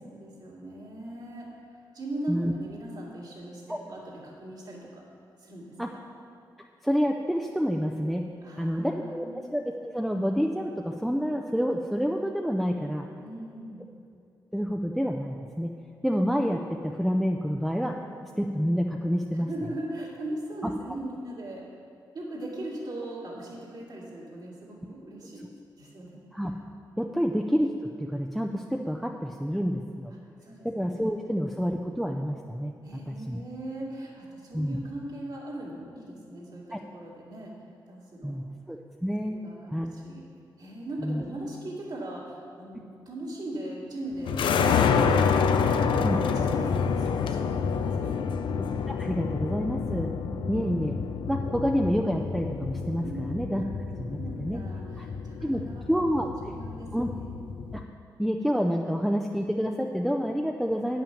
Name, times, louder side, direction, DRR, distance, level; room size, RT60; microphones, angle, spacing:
voice 1, 0.0-1.6 1.9-5.1 5.4-6.0 8.4-9.4 13.2-13.9 19.3-21.7 22.1-25.5 25.8-26.2 27.1-27.2 30.4-30.7 31.4-31.5 32.8-37.5 37.9-38.4 39.3-40.2 40.6-48.4 50.3-50.6 53.0-53.3 54.0-55.9 56.4-56.9 57.2-57.3, right 1 dB, 55° right, -3 dB, 2.4 m, -39 dB
voice 2, 6.8-8.2 8.6-9.3 9.5-13.1 14.5-15.7 16.0-17.9 18.4-19.5 26.3-26.5 27.0-27.7 28.0-30.1 30.6-32.7 33.1-33.4 34.5-34.8 36.7-36.8 38.2-39.4 39.7-39.9 41.0-41.2 46.0-46.2 48.9-50.1 50.5-50.9 51.3-53.6 54.0-54.6 55.0-55.1 55.4-56.3 56.9-57.1 57.7-57.8 58.2-61.0, equal, ahead, 2 dB, 0.5 m, -28 dB
sound 1, 44.3-57.8, left 6 dB, 80° left, 0.5 m, -28 dB
8.9 x 5.9 x 7.1 m, 2.5 s
cardioid pair, 80°, 8 cm